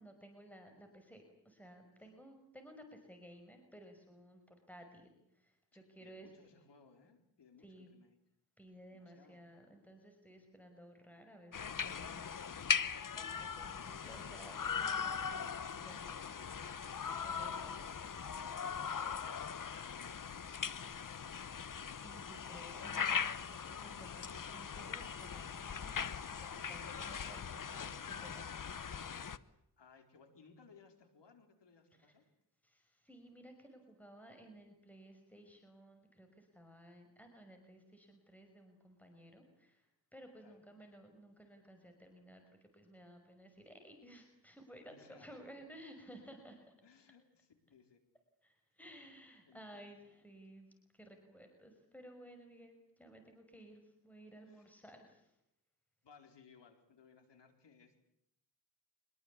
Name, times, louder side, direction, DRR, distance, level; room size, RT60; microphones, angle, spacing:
voice 1, 0.0-6.3 7.6-7.9 8.6-12.3 12.7-15.5 15.8-16.2 16.8-17.7 22.0-28.9 32.6-46.7 48.4-50.7 50.9-55.4, right 1 dB, 5° left, 5 dB, 5.6 m, -57 dB
voice 2, 5.7-8.2 8.9-9.5 16.8-17.9 18.5-20.7 29.8-32.3 40.4-40.7 44.8-45.5 46.8-48.0 49.5-50.0 54.5-54.8 56.0-58.0, left 5 dB, 80° left, 6 dB, 4.6 m, -63 dB
sound 1, 11.5-29.4, left 6 dB, 50° left, 1.1 m, -40 dB
25.0 x 22.5 x 8.5 m, 0.76 s
wide cardioid pair, 85°, 42 cm